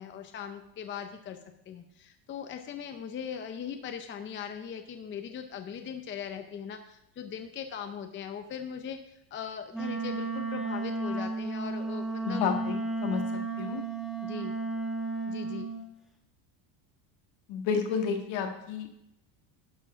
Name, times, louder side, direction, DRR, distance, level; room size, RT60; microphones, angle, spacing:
voice 1, 0.0-1.4 1.7-12.4 14.2-14.5 15.3-15.7, left 7 dB, 25° left, 7 dB, 0.6 m, -40 dB
Wind instrument woodwind instrument, 9.7-15.8, right 3 dB, ahead, 1.4 m, -33 dB
voice 2, 12.2-13.2 13.6-13.8 17.5-18.9, left 6 dB, 65° left, 4 dB, 1.9 m, -30 dB
11.5 x 4.6 x 5.8 m, 0.82 s
cardioid pair, 135°, 50 cm